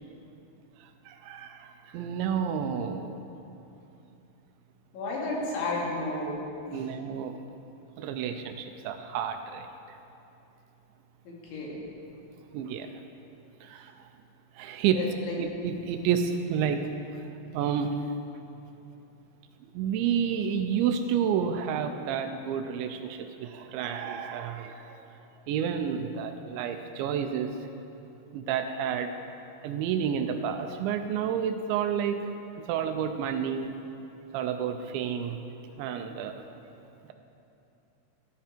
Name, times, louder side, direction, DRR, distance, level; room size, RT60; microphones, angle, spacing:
voice 1, 1.1-1.6 1.9-3.1 6.7-7.4 8.0-9.6 12.5-12.9 13.7-13.8 14.6-15.0 15.4-16.8 17.5-17.9 19.8-24.8 25.5-27.5 28.3-29.1 29.6-32.2 32.7-33.7 34.3-35.4 35.8-36.3, right 8 dB, 80° right, 7 dB, 2.9 m, -30 dB
voice 2, 4.9-6.4 6.7-6.9 11.2-12.0 14.9-15.4, left 2 dB, 75° left, -4 dB, 5.0 m, -33 dB
15.0 x 14.0 x 4.4 m, 2.8 s
omnidirectional pair, 5.4 m